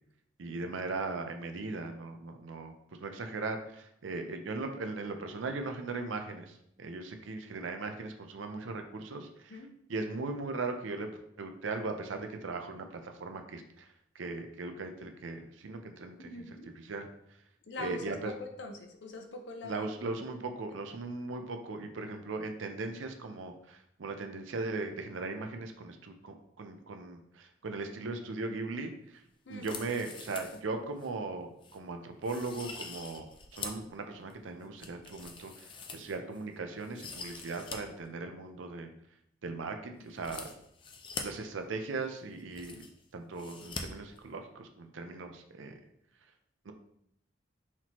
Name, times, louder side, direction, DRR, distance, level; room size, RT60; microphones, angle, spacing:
voice 1, 0.4-2.7 3.0-9.6 9.9-11.1 11.4-13.9 14.1-17.1 17.8-18.3 19.6-29.2 29.5-38.9 39.4-40.5 41.2-42.8 43.1-45.8 46.6-46.7, right 3 dB, 80° right, 6 dB, 0.5 m, -38 dB
voice 2, 16.2-16.7 17.7-20.2 29.5-29.8, left 2 dB, 65° left, 5 dB, 0.6 m, -43 dB
sound 1, 29.5-30.6 31.0-31.1 31.6-31.8 32.2-33.9 34.3-36.4 36.8-37.8 38.0-38.1 40.1-41.2 42.0-42.1 42.3-43.0 43.4-43.8 44.1-44.2, left 5 dB, 25° left, 0.4 m, -44 dB
5.8 x 2.9 x 3.0 m, 0.74 s
head